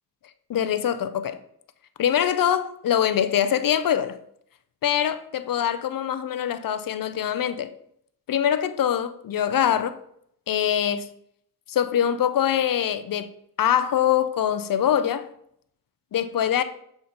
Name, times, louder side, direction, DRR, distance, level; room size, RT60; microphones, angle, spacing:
voice 1, 0.5-1.4 2.0-4.2 4.8-7.7 8.3-10.0 10.5-11.1 11.7-13.3 13.6-15.3 16.1-16.6, left 9 dB, 65° left, 0.5 m, -23 dB
6.9 x 3.8 x 4.2 m
wide cardioid pair, 130°, 37 cm